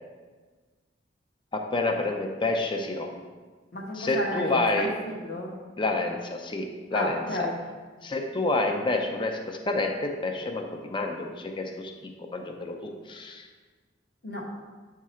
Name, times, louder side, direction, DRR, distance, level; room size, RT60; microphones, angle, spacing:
voice 1, 1.5-3.2 3.9-4.9 5.8-7.5 8.0-13.5, left 2 dB, 30° left, 3 dB, 0.5 m, -29 dB
voice 2, 3.7-5.5 6.9-7.6 14.2-14.5, left 1 dB, 60° left, -1 dB, 1.2 m, -32 dB
8.2 x 3.6 x 4.3 m, 1.4 s
head